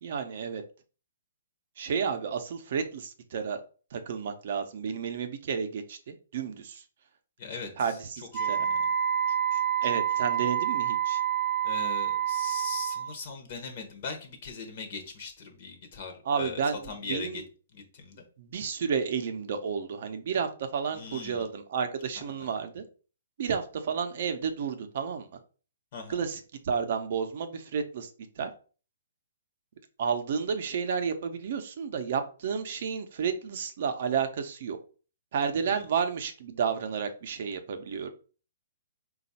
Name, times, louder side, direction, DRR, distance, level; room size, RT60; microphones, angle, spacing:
voice 1, 0.0-0.6 1.8-3.6 3.9-6.8 7.8-8.7 9.8-11.2 16.3-17.4 18.4-22.8 23.4-25.3 26.1-28.1 28.4-28.5 30.0-34.8 35.3-38.1, right 6 dB, 45° right, 7 dB, 0.5 m, -31 dB
voice 2, 7.4-7.7 8.4-8.8 9.5-9.6 9.9-10.0 11.6-16.6 16.9-17.4 17.7-18.2 20.9-21.5 22.4-22.5 25.9-26.2 35.7-35.8, left 4 dB, 40° left, 3 dB, 0.7 m, -40 dB
Wind instrument woodwind instrument, 8.3-13.1, right 9 dB, ahead, 0.6 m, -28 dB
4.2 x 2.3 x 4.0 m, 0.37 s
hypercardioid pair, 170°, 0 cm